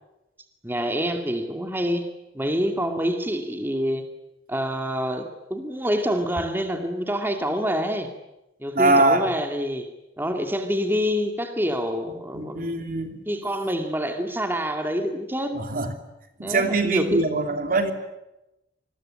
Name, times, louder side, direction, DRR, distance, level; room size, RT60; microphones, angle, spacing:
voice 1, 0.6-2.1 2.3-4.0 4.5-8.1 8.6-9.9 10.2-12.7 13.3-15.6 16.4-17.2, equal, 10° right, 5 dB, 2.4 m, -26 dB
voice 2, 8.7-9.3 12.3-13.2 15.5-15.9 16.4-17.9, right 2 dB, 50° right, 6 dB, 2.9 m, -22 dB
27.5 x 21.5 x 8.9 m, 0.93 s
head